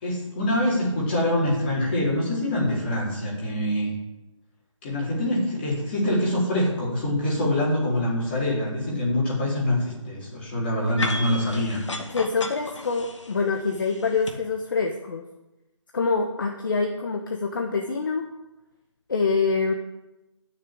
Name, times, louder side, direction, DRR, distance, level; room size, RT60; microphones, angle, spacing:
voice 1, 0.0-3.9 4.8-11.8, left 1 dB, 20° left, -6 dB, 4.1 m, -25 dB
sound 1, 11.0-14.3, left 2 dB, 65° left, 2.3 m, -34 dB
voice 2, 12.1-15.2 15.9-18.2 19.1-19.7, left 4 dB, 40° left, 3 dB, 1.2 m, -25 dB
12.5 x 6.7 x 8.8 m, 1.0 s
figure-of-eight pair, 170°, 16 cm